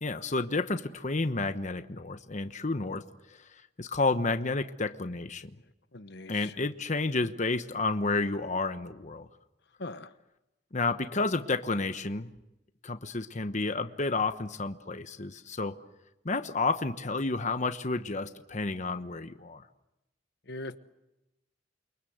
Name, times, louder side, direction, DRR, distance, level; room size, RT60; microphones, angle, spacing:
voice 1, 0.0-3.0 3.3-3.4 3.8-5.6 6.3-9.3 10.7-12.3 12.8-15.8 16.2-19.6, left 3 dB, 40° left, 8 dB, 1.1 m, -30 dB
voice 2, 5.9-6.5 9.8-10.1 20.5-20.8, left 2 dB, 60° left, 11 dB, 1.1 m, -40 dB
29.0 x 24.0 x 8.0 m, 0.91 s
head